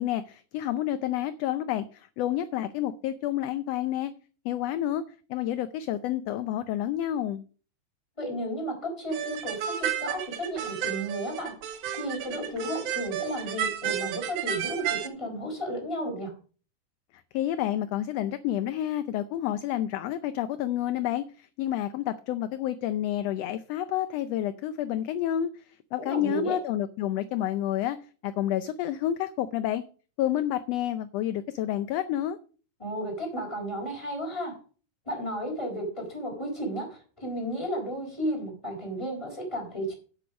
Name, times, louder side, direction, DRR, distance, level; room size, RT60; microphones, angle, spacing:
voice 1, 0.0-4.1 4.4-5.0 5.3-7.4 17.1-28.0 28.2-29.8 30.2-32.4, left 12 dB, 75° left, 12 dB, 1.5 m, -29 dB
voice 2, 8.2-16.3 26.0-26.6 32.8-34.6 35.0-39.9, right 1 dB, 10° left, 0 dB, 4.3 m, -33 dB
sound 1, 9.1-15.1, right 10 dB, 90° right, 2.5 m, -32 dB
8.9 x 7.8 x 6.2 m, 0.39 s
omnidirectional pair, 3.4 m